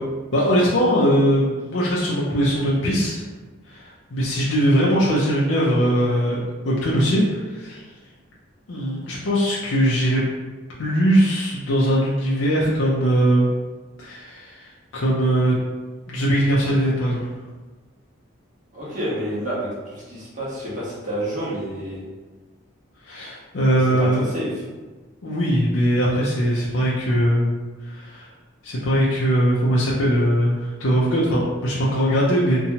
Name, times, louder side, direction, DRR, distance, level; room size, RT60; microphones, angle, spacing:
voice 1, 0.3-3.2 3.7-6.4 6.7-7.9 8.7-10.2 10.8-13.5 14.0-15.5 16.1-17.2 23.0-24.3 25.2-27.5 27.8-28.3 28.6-32.6, equal, 75° left, -6 dB, 0.5 m, -20 dB
voice 2, 18.7-22.0 23.7-24.5, right 1 dB, 40° right, -8 dB, 0.9 m, -29 dB
2.7 x 2.2 x 2.8 m, 1.3 s
head